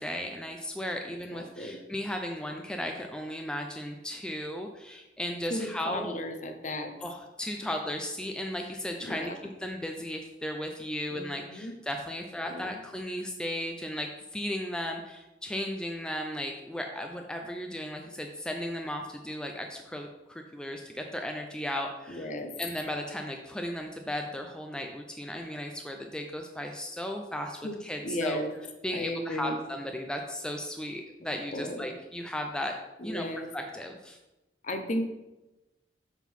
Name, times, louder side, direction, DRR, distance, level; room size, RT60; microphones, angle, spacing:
voice 1, 0.0-6.1 7.0-9.3 9.6-22.3 22.6-28.4 28.8-32.8 33.0-33.3 33.5-34.2, left 1 dB, 5° left, 3 dB, 0.4 m, -35 dB
voice 2, 1.3-1.8 5.5-6.9 7.6-7.8 9.0-9.3 11.1-11.8 12.4-12.8 22.1-22.5 27.6-27.7 28.0-28.5 28.9-29.6 31.5-31.9 33.0-33.5 34.6-35.0, left 1 dB, 45° left, 6 dB, 0.8 m, -35 dB
7.3 x 3.8 x 5.4 m, 1.0 s
head